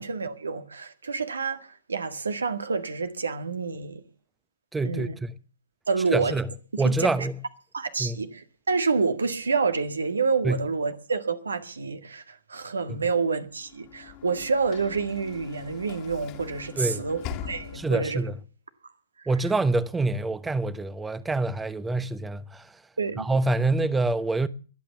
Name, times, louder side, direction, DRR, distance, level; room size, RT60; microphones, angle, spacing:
voice 1, 0.0-4.0 4.8-5.2 5.9-6.3 6.7-7.1 7.7-18.2 23.0-23.3, right 4 dB, 75° right, 1.8 m, -28 dB
voice 2, 4.7-5.1 6.1-6.5 6.8-7.4 8.0-8.2 10.4-10.6 12.9-13.0 16.8-17.0 17.7-18.4 19.3-22.7 23.2-24.5, right 2 dB, 10° right, 1.0 m, -26 dB
Sliding door / Slam, 13.6-18.3, left 8 dB, 35° left, 1.9 m, -41 dB
22.0 x 8.7 x 7.0 m
figure-of-eight pair, 115°, 0 cm